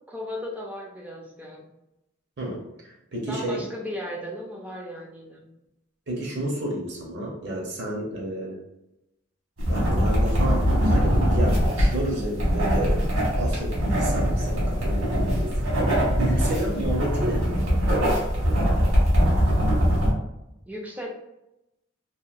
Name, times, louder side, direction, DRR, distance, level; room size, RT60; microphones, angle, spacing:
voice 1, 0.1-1.7 3.3-5.5 20.7-21.1, equal, 5° right, -1 dB, 0.4 m, -36 dB
voice 2, 2.4-3.6 6.1-8.6 9.7-13.0 13.3-15.6 16.2-17.9, right 1 dB, 55° right, -2 dB, 0.7 m, -31 dB
sound 1, 9.6-20.1, equal, 80° right, 1.3 m, -22 dB
2.8 x 2.4 x 2.4 m, 0.89 s
head